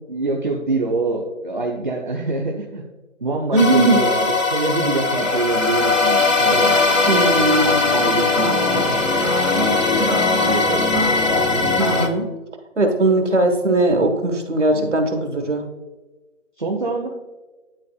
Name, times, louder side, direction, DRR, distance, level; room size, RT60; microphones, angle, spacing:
voice 1, 0.1-2.8 3.2-6.8 7.6-9.0 9.5-11.1 11.5-11.7 14.7-14.9 16.6-17.1, right 2 dB, 40° right, 1 dB, 0.8 m, -25 dB
voice 2, 3.5-4.0 7.1-7.8 11.9-12.2 12.8-15.6, right 2 dB, 70° right, 4 dB, 1.5 m, -18 dB
sound 1, 3.6-12.1, left 3 dB, 85° left, 1.2 m, -19 dB
11.5 x 4.1 x 2.4 m, 1.2 s
figure-of-eight pair, 170°, 37 cm